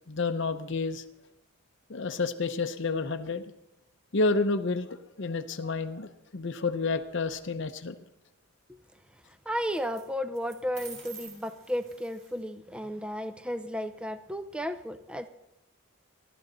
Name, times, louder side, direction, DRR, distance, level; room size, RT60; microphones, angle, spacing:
voice 1, 0.1-1.0 1.9-3.4 4.1-7.9, left 3 dB, 55° left, 8 dB, 0.7 m, -30 dB
sound 1, 7.3-7.4 9.7-10.0 10.3-12.4, right 5 dB, 35° right, 4.8 m, -48 dB
voice 2, 9.5-15.3, equal, 5° right, 10 dB, 0.5 m, -34 dB
27.0 x 12.0 x 3.9 m, 0.90 s
head